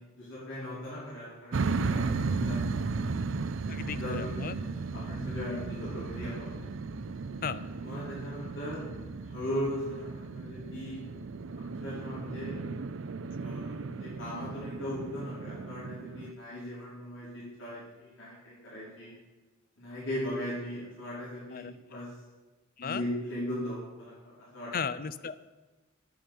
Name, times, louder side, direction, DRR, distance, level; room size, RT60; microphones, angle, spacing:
voice 1, 0.0-3.0 3.8-4.3 4.5-6.6 7.8-8.9 9.2-11.0 11.8-12.7 13.4-19.1 19.8-22.1 22.8-24.7, left 1 dB, 65° left, -8 dB, 5.1 m, -38 dB
sound 1, 1.5-16.3, right 4 dB, 65° right, 0.5 m, -35 dB
voice 2, 3.7-4.6 7.4-7.6 21.5-22.0 22.8-23.1 24.7-25.4, left 6 dB, 45° left, 14 dB, 0.5 m, -36 dB
9.7 x 8.8 x 7.5 m, 1.2 s
head